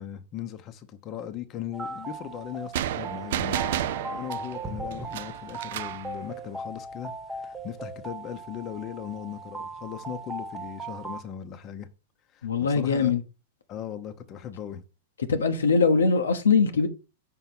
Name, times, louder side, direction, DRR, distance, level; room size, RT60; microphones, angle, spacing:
voice 1, 0.0-3.8 4.1-11.9 12.3-13.1 13.7-14.8, left 9 dB, 35° left, 1.0 m, -38 dB
sound 1, 1.7-11.2, right 2 dB, 10° right, 1.3 m, -38 dB
sound 2, 2.7-6.1, right 11 dB, 65° right, 0.5 m, -31 dB
voice 2, 12.4-13.2 15.3-16.9, left 5 dB, 85° left, 1.1 m, -22 dB
5.8 x 4.4 x 6.0 m
hypercardioid pair, 115°, 0 cm